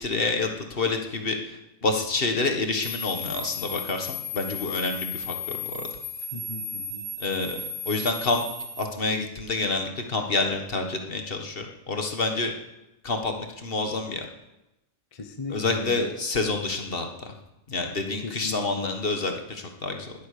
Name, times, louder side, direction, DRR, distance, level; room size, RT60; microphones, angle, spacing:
voice 1, 0.0-5.9 7.2-8.4 8.8-12.5 13.0-14.3 15.5-17.3 17.7-20.1, left 3 dB, 50° left, 4 dB, 1.7 m, -28 dB
sound 1, 2.8-8.8, left 4 dB, 75° left, 3.6 m, -35 dB
voice 2, 6.3-7.1 15.1-16.1 18.2-19.1, left 3 dB, 30° left, 6 dB, 1.0 m, -37 dB
20.0 x 8.7 x 6.7 m, 0.96 s
omnidirectional pair, 1.2 m